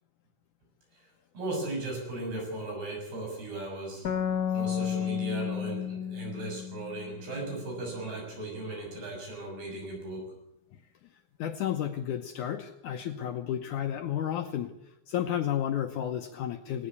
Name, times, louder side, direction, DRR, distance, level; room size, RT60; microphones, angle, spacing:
voice 1, 1.4-4.1 4.5-10.3, right 2 dB, 75° right, 1 dB, 8.8 m, -37 dB
sound 1, 4.0-7.6, left 8 dB, 45° left, 1.2 m, -32 dB
voice 2, 11.4-16.9, left 10 dB, 75° left, 6 dB, 1.9 m, -32 dB
19.0 x 17.5 x 8.4 m, 0.84 s
omnidirectional pair, 4.5 m